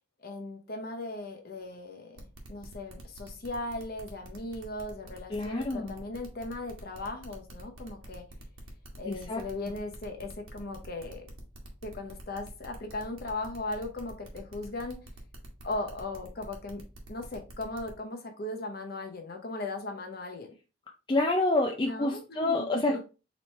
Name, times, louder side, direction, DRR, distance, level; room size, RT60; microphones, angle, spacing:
voice 1, 0.2-8.3 9.0-11.3 11.8-15.1 15.6-16.8 17.1-20.5 21.9-23.0, left 2 dB, 45° left, 0.8 m, -38 dB
sound 1, 2.2-17.9, right 1 dB, 65° right, 1.1 m, -49 dB
voice 2, 5.3-5.9 9.1-9.4 21.1-23.0, left 2 dB, 20° left, 0.4 m, -28 dB
4.1 x 3.1 x 3.2 m
head